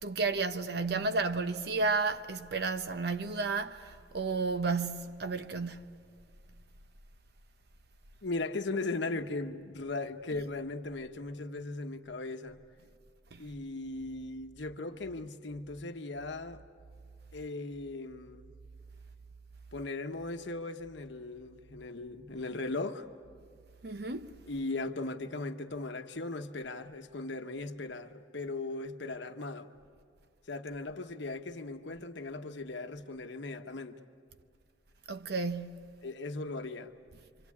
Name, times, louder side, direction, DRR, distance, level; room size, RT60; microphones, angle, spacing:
voice 1, 0.0-5.8 13.3-13.5 23.8-24.3 35.1-36.0, right 4 dB, 55° right, 0.8 m, -32 dB
voice 2, 8.2-12.6 13.4-16.6 17.3-18.5 19.7-23.1 24.5-29.7 30.5-34.0 36.0-36.9, left 2 dB, 70° left, 1.1 m, -38 dB
27.5 x 26.0 x 8.4 m
head